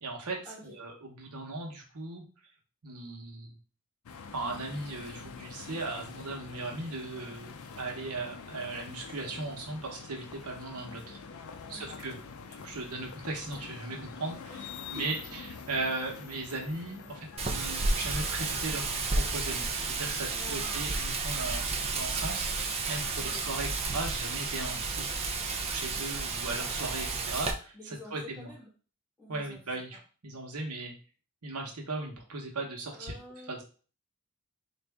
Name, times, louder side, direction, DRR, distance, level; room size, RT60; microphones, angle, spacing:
voice 1, 0.0-2.2 2.8-3.6 4.3-11.2 11.7-12.2 12.5-14.7 14.9-21.7 21.9-25.1 25.4-28.5 29.3-30.9 31.4-33.2 33.5-33.6, right 2 dB, 85° right, 1 dB, 1.0 m, -37 dB
sound 1, 4.1-20.7, left 5 dB, 70° left, 0.5 m, -46 dB
voice 2, 11.6-12.0 14.5-15.2 20.3-20.9 23.2-23.7 27.7-28.7 29.2-30.0 32.9-33.6, left 2 dB, 5° left, -7 dB, 1.5 m, -49 dB
Wind, 17.4-27.5, right 3 dB, 25° right, 0.5 m, -32 dB
4.0 x 2.5 x 3.4 m, 0.38 s
head